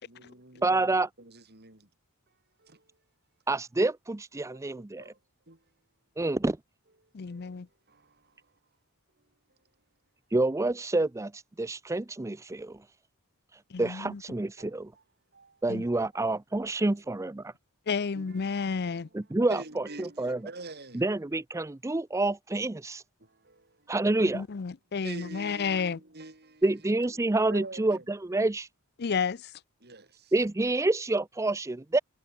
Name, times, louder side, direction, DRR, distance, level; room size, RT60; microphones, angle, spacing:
voice 1, 0.1-1.9 2.6-3.0 4.5-5.2 5.5-5.7 7.0-8.6 9.2-9.6 14.6-15.0 15.3-15.6 16.1-16.2 16.8-17.0 18.1-21.0 23.2-24.0 25.0-28.1 29.8-30.3, right 2 dB, 50° right, 5.9 m, -47 dB
voice 2, 0.6-1.1 3.5-5.0 6.2-6.6 10.3-12.8 13.8-14.9 15.6-17.5 19.1-19.6 20.0-20.4 20.9-23.0 23.9-24.4 26.6-28.7 30.3-32.0, right 2 dB, 15° right, 0.5 m, -28 dB
voice 3, 7.1-7.7 13.7-14.2 15.7-15.8 17.9-19.1 24.2-26.0 29.0-29.5, left 5 dB, 50° left, 0.5 m, -31 dB
head